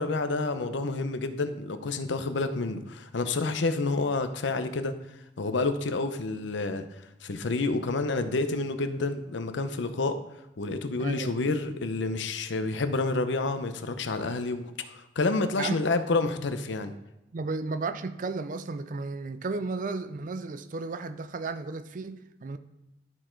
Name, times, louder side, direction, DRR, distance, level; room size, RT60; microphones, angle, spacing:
voice 1, 0.0-4.9 5.4-6.9 7.2-10.2 10.6-16.9, left 3 dB, 70° left, 0.6 m, -29 dB
voice 2, 11.0-11.4 15.6-15.9 17.3-22.6, right 3 dB, 45° right, 0.4 m, -34 dB
12.0 x 4.4 x 4.4 m
head